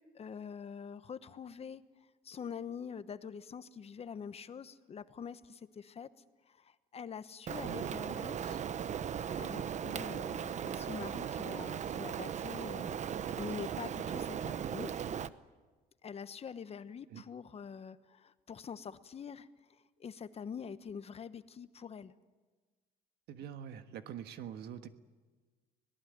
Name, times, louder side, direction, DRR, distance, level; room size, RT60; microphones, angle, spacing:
voice 1, 0.0-1.8 2.2-6.1 6.5-8.6 9.4-14.9 16.0-22.1, left 7 dB, 35° left, 13 dB, 1.1 m, -45 dB
Rain, 7.5-15.3, right 8 dB, 45° right, 0.8 m, -38 dB
voice 2, 23.3-24.9, right 9 dB, 75° right, 9 dB, 1.5 m, -44 dB
25.0 x 18.5 x 9.5 m, 1.3 s
cardioid pair, 110°, 17 cm